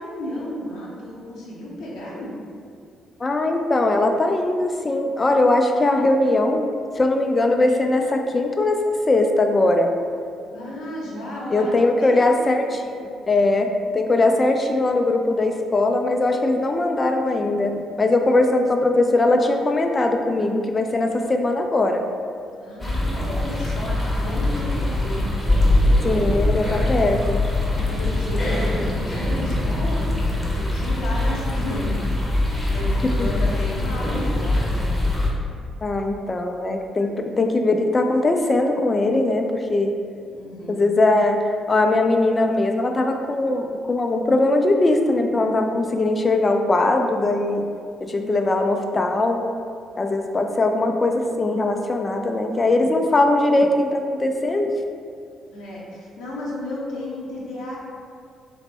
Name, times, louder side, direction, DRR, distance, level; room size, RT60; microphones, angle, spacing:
voice 1, 0.0-2.3 10.5-12.7 13.8-14.1 22.6-25.6 25.9-26.0 27.7-34.8 40.3-40.8 48.0-48.3 52.7-52.8 55.5-57.8, left 1 dB, 60° left, -5 dB, 0.7 m, -33 dB
voice 2, 3.2-6.7 7.0-8.8 9.1-9.9 11.5-12.9 13.3-22.1 26.0-27.4 33.2-33.3 35.8-40.0 40.7-47.7 48.0-49.5 50.0-54.7, left 2 dB, 30° left, 4 dB, 0.3 m, -20 dB
sound 1, 22.8-35.3, left 1 dB, 15° left, 0.7 m, -22 dB
3.3 x 2.0 x 3.9 m, 2.3 s
figure-of-eight pair, 45°, 0 cm